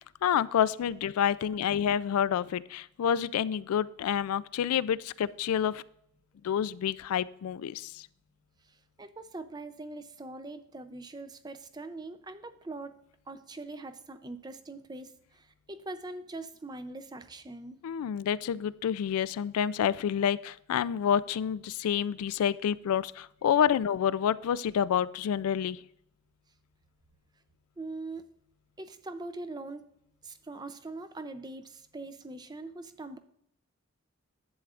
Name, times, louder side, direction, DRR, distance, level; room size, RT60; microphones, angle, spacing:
voice 1, 0.2-5.8 6.4-8.1 17.8-25.8, left 8 dB, 85° left, 19 dB, 0.3 m, -28 dB
voice 2, 8.7-12.9 13.3-17.8 27.8-28.3 28.8-29.8 30.2-33.2, right 2 dB, 20° right, 10 dB, 0.5 m, -42 dB
10.5 x 8.2 x 2.5 m, 0.74 s
head